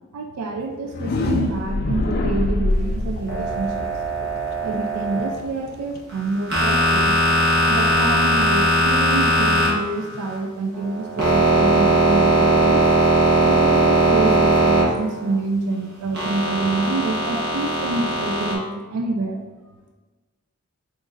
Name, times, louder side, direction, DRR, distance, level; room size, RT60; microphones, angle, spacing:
voice 1, 0.1-3.9 4.6-7.2 7.7-12.8 13.4-19.4, right 3 dB, 90° right, 3 dB, 0.4 m, -27 dB
sound 1, 0.8-6.7, left 2 dB, 45° left, 0.3 m, -26 dB
sound 2, 3.3-5.3 6.1-10.4 10.7-15.3 16.1-18.5, right 1 dB, 45° right, 1.1 m, -19 dB
4.0 x 2.5 x 3.7 m, 1.3 s
head